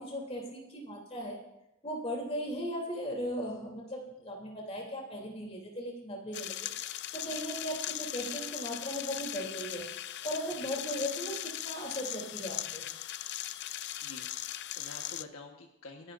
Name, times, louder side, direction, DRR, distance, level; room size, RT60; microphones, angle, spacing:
voice 1, 0.0-1.4 1.8-6.7 7.1-9.9 10.2-12.8, equal, 30° left, -1 dB, 3.1 m, -37 dB
sound 1, 6.3-15.2, left 13 dB, 50° left, 0.4 m, -39 dB
voice 2, 14.6-16.1, left 3 dB, 70° left, 2 dB, 1.4 m, -48 dB
28.0 x 11.0 x 2.6 m, 0.87 s
head